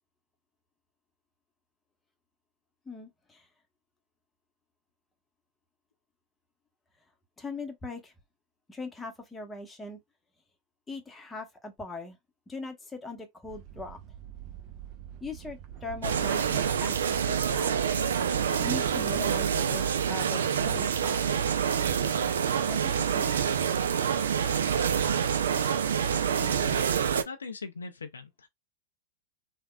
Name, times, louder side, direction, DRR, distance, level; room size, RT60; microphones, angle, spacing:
voice 1, 2.9-3.5 7.4-8.1 8.7-10.0 10.9-12.2 12.5-14.0 15.2-17.7 18.6-21.2 22.7-23.3, left 3 dB, 10° left, 0.8 m, -40 dB
sound 1, 13.5-19.2, right 10 dB, 45° right, 0.7 m, -46 dB
sound 2, 16.0-27.2, right 7 dB, 75° right, 0.3 m, -27 dB
voice 2, 26.2-26.9 27.3-28.5, left 4 dB, 80° left, 0.4 m, -41 dB
3.4 x 2.1 x 2.3 m
figure-of-eight pair, 95°, 0 cm